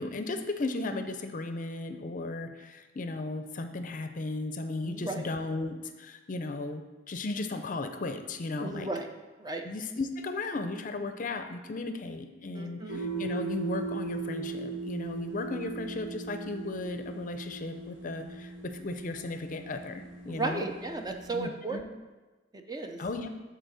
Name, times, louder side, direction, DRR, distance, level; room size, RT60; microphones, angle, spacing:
voice 1, 0.0-8.9 9.6-20.7 21.3-21.9 23.0-23.3, left 2 dB, 45° left, 8 dB, 0.5 m, -35 dB
voice 2, 4.8-5.3 8.6-9.1 9.4-9.7 12.5-13.0 20.3-21.8 22.5-23.0, right 3 dB, 20° right, 4 dB, 0.5 m, -35 dB
sound 1, 12.9-21.4, right 3 dB, 85° right, 1.4 m, -38 dB
8.1 x 4.0 x 6.3 m, 1.2 s
head